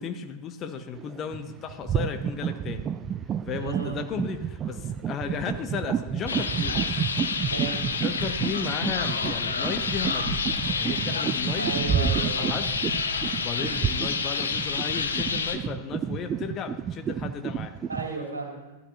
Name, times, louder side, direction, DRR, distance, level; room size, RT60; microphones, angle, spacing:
voice 1, 0.0-2.9 3.5-7.1 8.0-10.4 10.7-12.7 13.4-17.9, left 6 dB, 30° left, 7 dB, 1.0 m, -35 dB
sound 1, 0.9-1.4 1.7-18.1, right 8 dB, 25° right, 0.4 m, -30 dB
voice 2, 3.6-3.9 7.4-7.9 11.6-12.6 17.9-18.8, right 4 dB, 75° right, -1 dB, 2.3 m, -34 dB
sound 2, 6.3-15.6, left 5 dB, 70° left, 0.8 m, -29 dB
14.5 x 12.5 x 2.8 m, 1.1 s
figure-of-eight pair, 90°, 0 cm